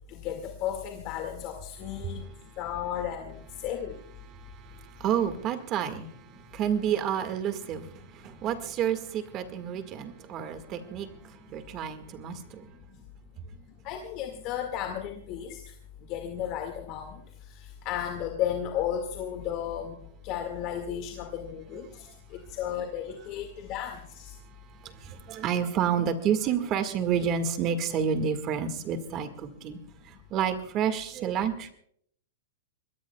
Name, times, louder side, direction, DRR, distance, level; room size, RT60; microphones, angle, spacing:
voice 1, 0.1-2.2 2.6-4.0 13.8-15.6 16.1-17.2 17.6-19.9 20.2-24.3, left 10 dB, 40° left, 3 dB, 2.0 m, -34 dB
voice 2, 4.3-12.7 24.8-29.8 30.0-31.7, right 8 dB, 30° right, 9 dB, 1.8 m, -30 dB
23.5 x 20.5 x 2.3 m, 0.65 s
hypercardioid pair, 150°, 0 cm